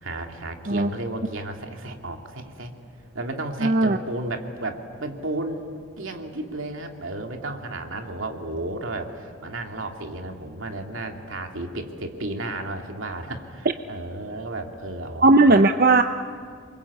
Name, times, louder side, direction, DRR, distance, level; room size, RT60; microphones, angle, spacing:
voice 1, 0.0-2.7 3.1-15.6, right 2 dB, 75° right, 3 dB, 2.6 m, -33 dB
voice 2, 3.6-4.0 15.2-16.0, right 2 dB, 45° right, 8 dB, 0.7 m, -16 dB
27.5 x 24.0 x 8.4 m, 2.2 s
head